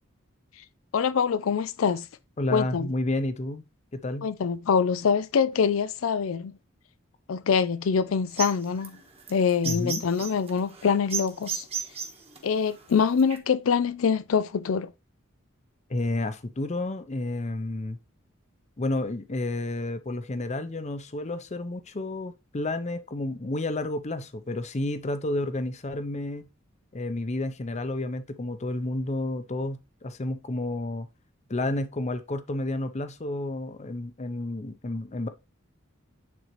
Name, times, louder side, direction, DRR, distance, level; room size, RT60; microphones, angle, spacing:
voice 1, 0.9-2.1 2.5-2.9 4.2-6.6 7.3-9.0 9.3-11.7 12.4-14.9, left 6 dB, 90° left, 0.4 m, -24 dB
voice 2, 2.4-3.6 4.0-4.3 9.6-10.0 15.9-18.0 18.8-26.5 26.9-31.1 31.5-35.3, left 2 dB, 35° left, 0.7 m, -31 dB
sound 1, 8.3-13.4, right 7 dB, 30° right, 1.3 m, -35 dB
9.3 x 3.9 x 3.1 m
head